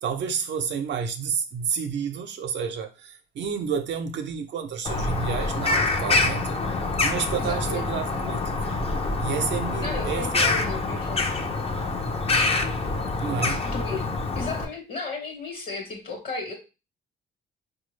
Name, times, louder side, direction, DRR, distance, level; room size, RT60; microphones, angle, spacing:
voice 1, 0.0-6.6 7.0-8.8 9.2-10.5 13.2-13.7, right 6 dB, 65° right, 0.6 m, -30 dB
Bird vocalization bird call bird song, 4.9-14.7, left 3 dB, 30° left, 0.6 m, -26 dB
voice 2, 7.4-7.9 9.8-11.3 13.7-14.1 14.3-16.5, left 4 dB, 50° left, 1.2 m, -34 dB
4.3 x 2.3 x 3.2 m
cardioid pair, 90°, 20 cm